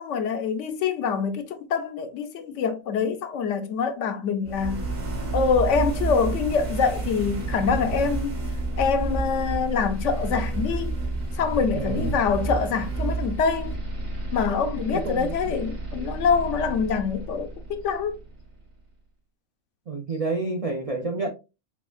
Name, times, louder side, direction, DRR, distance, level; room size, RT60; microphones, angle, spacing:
voice 1, 0.0-4.9 5.3-8.4 8.8-11.0 11.4-13.7 14.3-18.2, left 6 dB, 70° left, 0.9 m, -25 dB
sound 1, 4.4-18.3, right 2 dB, 75° right, 1.9 m, -30 dB
voice 2, 11.7-12.2 14.9-15.6 19.9-21.3, right 3 dB, 60° right, 0.3 m, -29 dB
5.4 x 2.3 x 2.3 m
omnidirectional pair, 1.4 m